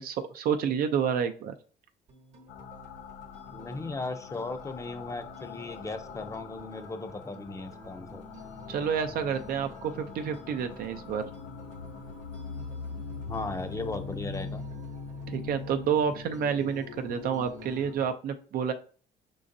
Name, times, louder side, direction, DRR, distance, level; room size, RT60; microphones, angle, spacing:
voice 1, 0.0-1.5 8.7-11.2 15.3-18.7, right 7 dB, 60° right, 7 dB, 0.5 m, -29 dB
sound 1, 2.1-18.1, right 1 dB, 45° right, 1.0 m, -51 dB
sound 2, 2.5-17.9, left 5 dB, 90° left, 0.5 m, -43 dB
voice 2, 3.5-8.2 13.3-14.6, left 3 dB, 20° left, 7 dB, 0.6 m, -37 dB
5.1 x 3.8 x 2.6 m, 0.42 s
cardioid pair, 110°, 17 cm